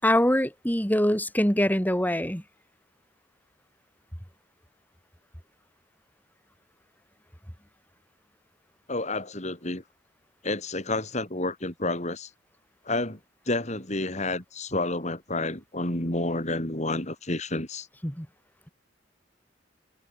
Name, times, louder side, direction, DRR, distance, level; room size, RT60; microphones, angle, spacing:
voice 1, 0.0-2.4 18.0-18.3, left 1 dB, 10° left, 6.9 m, -23 dB
voice 2, 8.9-9.8 10.4-12.3 12.9-13.2 13.5-17.9, left 2 dB, 40° left, 5.6 m, -30 dB
head